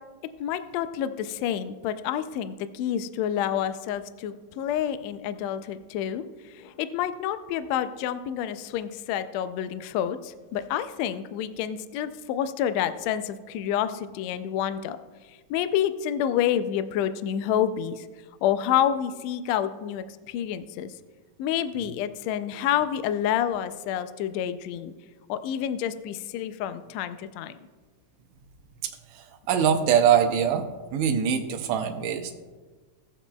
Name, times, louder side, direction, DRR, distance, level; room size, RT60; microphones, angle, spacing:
voice 1, 0.4-6.2 6.5-15.0 15.5-18.0 18.4-20.9 21.4-24.9 25.3-27.5, left 10 dB, 80° left, 11 dB, 1.6 m, -28 dB
voice 2, 28.8-30.7 30.9-32.3, right 8 dB, 75° right, 3 dB, 1.9 m, -23 dB
18.5 x 7.4 x 2.3 m, 1.4 s
omnidirectional pair, 3.4 m